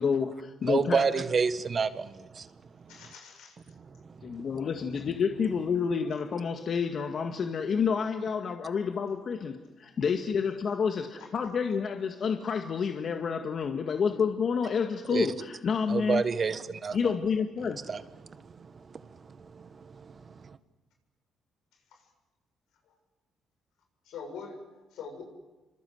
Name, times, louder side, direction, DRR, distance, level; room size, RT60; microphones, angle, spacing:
voice 1, 0.0-1.1 4.2-16.2 16.9-17.8, left 6 dB, 55° left, 1.9 m, -29 dB
voice 2, 0.6-2.5 15.1-15.3 15.9-17.0 17.9-18.0 19.5-19.7, right 5 dB, 40° right, 1.6 m, -28 dB
voice 3, 2.9-3.6 11.2-11.3 21.9-22.0 22.9-23.0 24.0-25.2, left 5 dB, 85° left, 7.6 m, -44 dB
28.5 x 25.5 x 8.1 m
cardioid pair, 90°, 0 cm